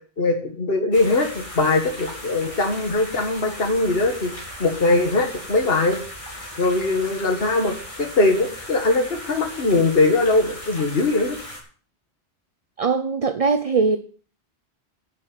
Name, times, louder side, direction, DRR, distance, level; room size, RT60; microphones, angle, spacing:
voice 1, 0.2-4.3 4.6-6.0 6.6-11.4, left 2 dB, 60° left, 1.9 m, -21 dB
sound 1, 0.9-11.6, left 1 dB, 30° left, 4.6 m, -37 dB
voice 2, 12.8-14.0, right 4 dB, 35° right, 0.8 m, -21 dB
10.5 x 7.5 x 9.1 m
omnidirectional pair, 1.1 m